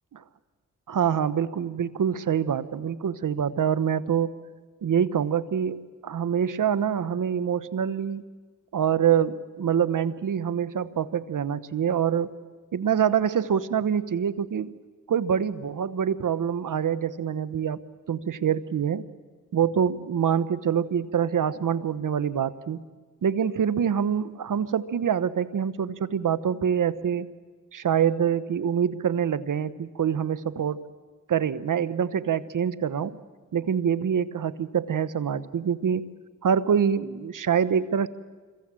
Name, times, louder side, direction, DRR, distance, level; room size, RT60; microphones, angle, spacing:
voice 1, 0.9-4.3 4.8-8.2 8.7-12.3 12.7-14.7 15.1-17.8 18.1-19.1 19.5-22.8 23.2-27.3 27.7-30.8 31.3-33.2 33.5-36.1 36.4-38.1, right 8 dB, 65° right, 16 dB, 1.0 m, -25 dB
26.5 x 22.5 x 7.6 m, 1.4 s
cardioid pair, 50°, 34 cm